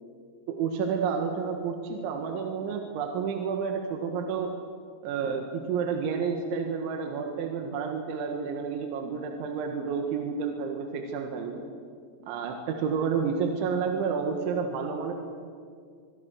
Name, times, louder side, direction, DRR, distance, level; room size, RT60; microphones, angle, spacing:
voice 1, 0.5-4.5 5.0-11.6 12.2-15.1, right 6 dB, 75° right, 3 dB, 3.9 m, -30 dB
25.0 x 23.0 x 6.5 m, 2.2 s
omnidirectional pair, 5.5 m